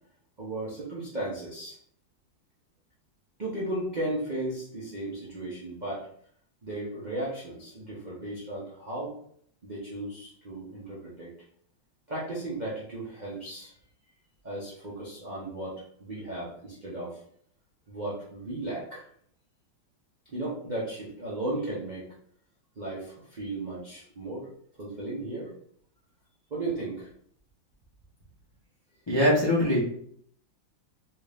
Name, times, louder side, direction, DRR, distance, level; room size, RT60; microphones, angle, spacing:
voice 1, 0.4-1.8 3.4-6.1 6.6-9.1 9.6-11.3 12.1-13.7 14.4-17.2 17.9-19.1 20.2-22.1 22.8-24.5 24.8-25.5 26.5-27.1, right 1 dB, 75° right, -6 dB, 0.4 m, -35 dB
voice 2, 29.1-29.8, left 1 dB, 45° left, -7 dB, 0.3 m, -22 dB
3.4 x 2.5 x 3.4 m, 0.63 s
omnidirectional pair, 2.2 m